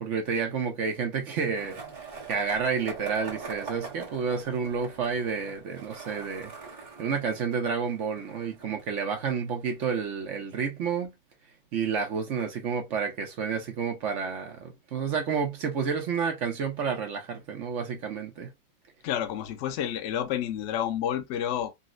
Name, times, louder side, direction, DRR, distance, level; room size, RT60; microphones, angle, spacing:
voice 1, 0.0-1.8 2.3-6.5 7.0-11.1 11.7-18.5, right 6 dB, 60° right, 0.8 m, -30 dB
Skateboard, 1.5-9.5, right 5 dB, 30° right, 0.9 m, -43 dB
voice 2, 19.0-21.7, left 10 dB, 80° left, 0.6 m, -30 dB
4.0 x 2.0 x 2.4 m
omnidirectional pair, 2.0 m